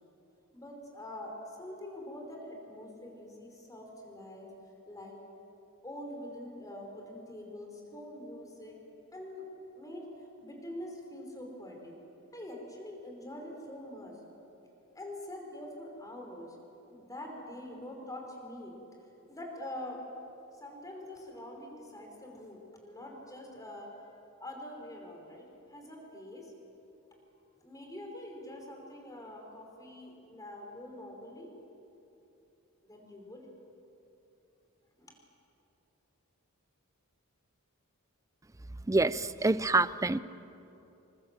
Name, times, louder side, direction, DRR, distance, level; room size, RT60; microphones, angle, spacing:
voice 1, 0.5-4.5 4.9-5.2 5.8-8.8 9.1-9.5 9.7-12.0 12.3-14.2 15.0-16.6 16.9-18.8 19.3-20.0 20.5-24.1 24.4-26.5 27.6-31.5 32.8-33.5 35.0-35.1, left 1 dB, 15° left, 1 dB, 5.2 m, -45 dB
voice 2, 38.9-40.2, right 2 dB, 15° right, 15 dB, 0.5 m, -26 dB
27.5 x 24.0 x 7.7 m, 2.9 s
head